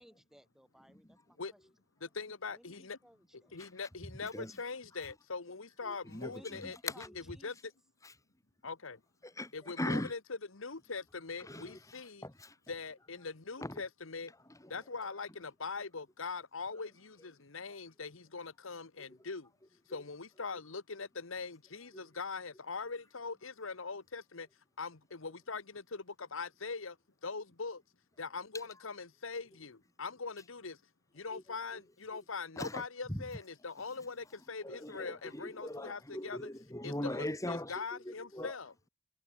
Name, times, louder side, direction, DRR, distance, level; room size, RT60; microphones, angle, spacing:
voice 1, 0.0-1.6 2.5-3.5 6.3-7.6, equal, ahead, 7.4 m, -60 dB
voice 2, 2.0-3.0 3.5-6.8 7.4-7.7 8.6-9.0 9.5-10.2 10.5-12.2 12.7-14.3 14.7-19.5 19.9-24.5 24.8-27.0 27.2-27.8 28.2-30.8 31.1-36.5 36.8-38.7, left 4 dB, 70° left, 1.3 m, -42 dB
voice 3, 4.2-4.6 5.8-7.2 8.0-8.1 9.2-10.1 11.4-12.6 13.6-13.8 14.5-14.8 21.9-22.0 31.3-31.4 31.7-31.8 32.1-32.2 32.6-33.2 34.6-38.6, left 1 dB, 15° left, 2.8 m, -41 dB
head